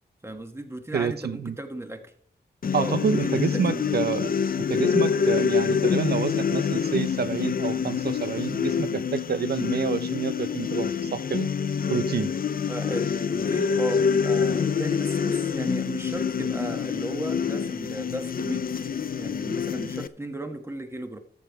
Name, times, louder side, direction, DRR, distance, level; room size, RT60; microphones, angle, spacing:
voice 1, 0.2-2.1 2.7-3.9 12.7-21.2, right 1 dB, 15° right, 1.5 m, -36 dB
voice 2, 0.9-1.6 2.7-4.3 4.6-11.5 11.9-12.3, right 6 dB, 65° right, 0.7 m, -28 dB
sound 1, 2.6-20.1, left 6 dB, 55° left, 0.6 m, -26 dB
13.5 x 7.0 x 4.7 m
wide cardioid pair, 105°, 18 cm